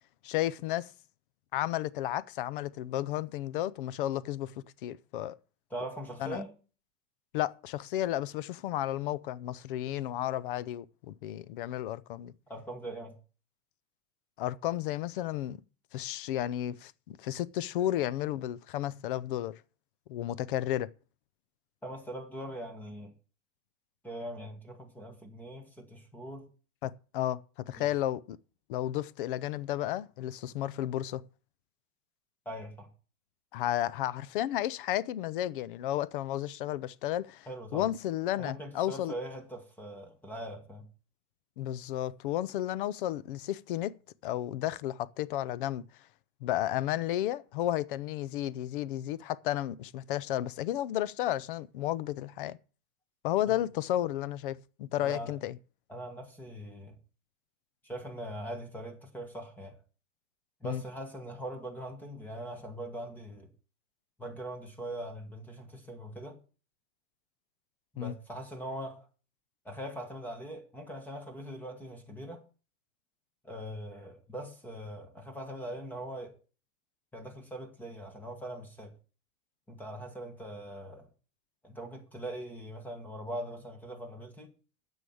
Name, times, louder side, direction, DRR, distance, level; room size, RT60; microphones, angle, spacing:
voice 1, 0.2-0.9 1.5-4.5 4.8-5.4 6.2-6.4 7.3-12.3 14.4-15.6 15.9-19.6 20.1-20.9 26.8-28.4 28.7-31.2 33.5-39.1 41.6-44.0 44.2-45.8 46.4-52.6 53.2-55.6 60.6-60.8 68.0-68.1, left 13 dB, 40° left, 0.5 m, -33 dB
voice 2, 5.7-6.5 12.5-13.2 21.8-23.1 24.0-26.4 27.8-27.9 32.4-32.9 37.5-37.9 38.4-40.9 53.5-53.6 55.0-55.4 55.9-57.0 57.8-59.7 60.6-63.5 64.2-66.4 67.9-69.1 69.6-72.4 73.4-76.4 77.1-78.9 79.7-81.1 81.6-84.5, right 1 dB, 5° left, 1.4 m, -41 dB
9.6 x 7.1 x 7.7 m
supercardioid pair, 165°, 43 cm